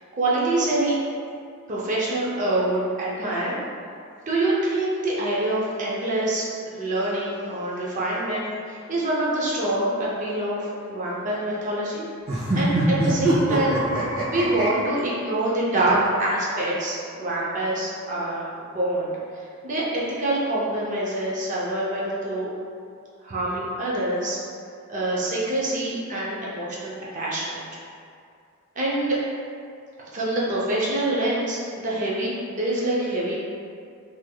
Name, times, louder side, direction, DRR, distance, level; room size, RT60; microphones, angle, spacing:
voice 1, 0.2-0.9 1.7-3.6 4.3-12.1 12.5-13.8 14.3-18.5 18.7-19.1 19.3-22.5 23.2-24.4 24.9-27.6 28.8-29.2 30.1-33.4, right 1 dB, 35° right, -6 dB, 0.5 m, -25 dB
sound 1, 12.3-14.7, right 2 dB, 85° right, 1.2 m, -23 dB
3.3 x 3.3 x 2.2 m, 2.3 s
head